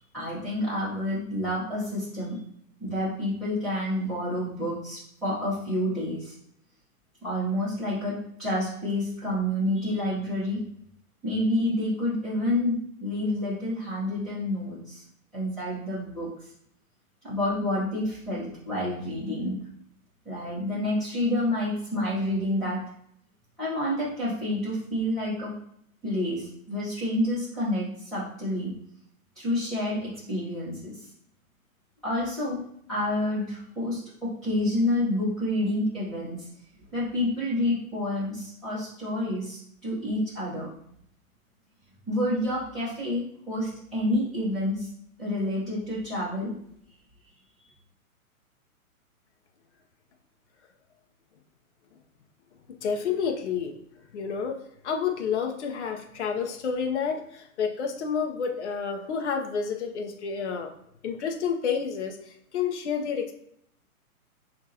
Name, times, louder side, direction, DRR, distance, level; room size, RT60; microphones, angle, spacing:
voice 1, 0.1-2.4 2.8-6.3 7.2-10.6 11.2-15.0 15.3-16.3 17.2-19.6 20.2-22.8 23.6-25.5 26.0-28.7 29.4-30.9 32.0-32.6 32.9-36.4 36.9-40.7 42.1-44.9 45.2-46.5, left 1 dB, ahead, -13 dB, 0.8 m, -28 dB
voice 2, 52.8-53.7 54.1-54.6 54.8-60.7 61.0-63.3, left 6 dB, 50° left, 3 dB, 0.7 m, -29 dB
7.0 x 2.6 x 2.8 m, 0.70 s
hypercardioid pair, 170°, 44 cm